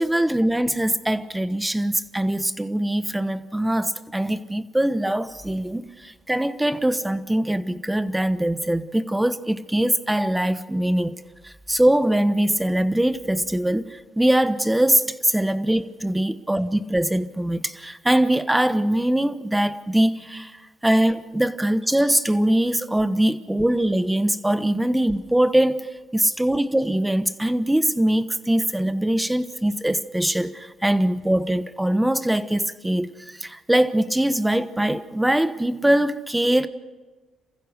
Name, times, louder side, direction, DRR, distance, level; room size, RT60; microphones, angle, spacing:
voice 1, 0.0-11.1 11.4-20.5 20.8-25.8 26.1-36.7, right 1 dB, 10° right, 1.1 m, -22 dB
27.5 x 15.5 x 6.5 m
cardioid pair, 90°, 0 cm